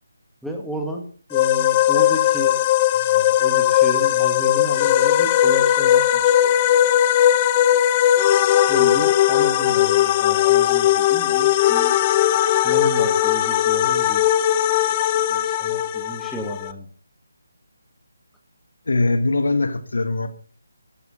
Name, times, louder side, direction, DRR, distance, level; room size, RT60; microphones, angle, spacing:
voice 1, 0.4-1.0 1.3-2.6 2.9-6.6 8.7-12.4 12.6-14.2 14.9-15.0 15.3-16.9, equal, ahead, 2.2 m, -32 dB
sound 1, 1.3-16.7, left 12 dB, 25° left, 0.7 m, -18 dB
voice 2, 18.9-20.3, left 2 dB, 70° left, 1.9 m, -21 dB
15.0 x 12.5 x 4.0 m
figure-of-eight pair, 155°, 0 cm